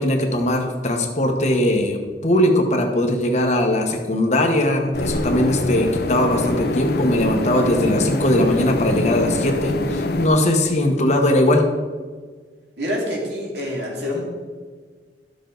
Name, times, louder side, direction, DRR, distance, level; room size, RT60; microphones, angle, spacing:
voice 1, 0.0-11.6, left 1 dB, 40° left, 3 dB, 1.1 m, -20 dB
sound 1, 4.9-10.3, left 2 dB, 60° left, 0.7 m, -24 dB
voice 2, 12.8-14.2, left 1 dB, 70° right, -2 dB, 2.5 m, -26 dB
12.0 x 6.9 x 3.9 m, 1.5 s
head